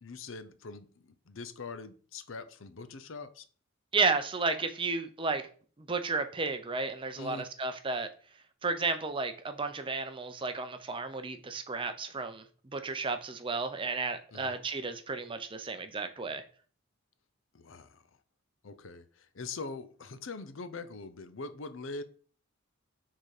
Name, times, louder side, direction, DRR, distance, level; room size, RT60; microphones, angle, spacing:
voice 1, 0.0-3.4 7.2-7.5 14.3-14.5 17.5-18.0 18.6-22.0, left 3 dB, 65° left, 0.7 m, -43 dB
voice 2, 3.9-5.4 5.9-8.1 8.6-12.4 12.7-16.4, right 4 dB, 25° right, 0.6 m, -32 dB
6.7 x 3.8 x 4.8 m
head